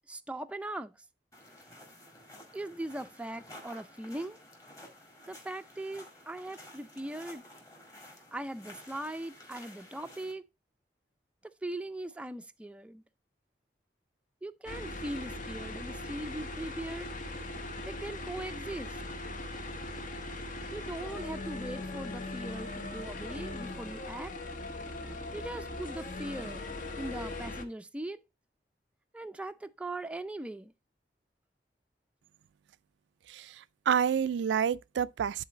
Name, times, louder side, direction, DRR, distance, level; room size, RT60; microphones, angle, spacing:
voice 1, 0.1-0.9 2.5-4.4 5.3-7.4 8.3-10.4 11.6-13.0 14.4-17.1 17.8-19.0 20.7-24.3 25.3-26.6 27.0-28.2 29.1-30.7, right 1 dB, 5° right, 0.4 m, -40 dB
sound 1, 1.3-10.3, left 1 dB, 20° left, 1.9 m, -52 dB
sound 2, 14.6-27.6, left 2 dB, 50° left, 0.9 m, -40 dB
voice 2, 33.3-35.4, right 8 dB, 85° right, 0.3 m, -29 dB
10.5 x 4.0 x 3.9 m
head